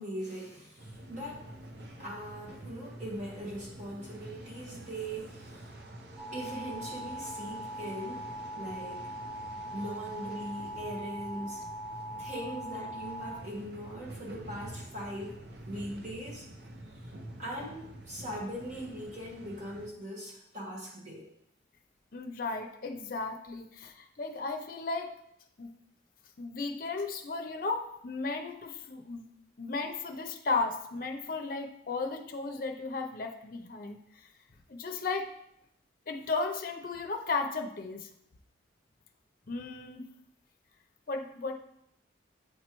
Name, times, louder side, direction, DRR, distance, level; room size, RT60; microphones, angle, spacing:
voice 1, 0.0-1.5 2.0-5.7 6.3-8.3 8.5-9.0 9.7-11.6 12.2-15.3 15.7-16.5 17.4-21.3, equal, 40° right, -4 dB, 1.5 m, -40 dB
sound 1, 0.8-19.9, right 1 dB, 55° right, 0.8 m, -48 dB
sound 2, 6.2-13.3, right 1 dB, ahead, 0.8 m, -41 dB
voice 2, 22.1-25.1 25.6-25.7 26.4-29.3 29.6-34.3 34.7-35.3 36.1-38.1 39.5-40.1 41.1-41.5, left 3 dB, 50° left, 4 dB, 0.6 m, -35 dB
7.9 x 4.3 x 3.0 m, 0.76 s
head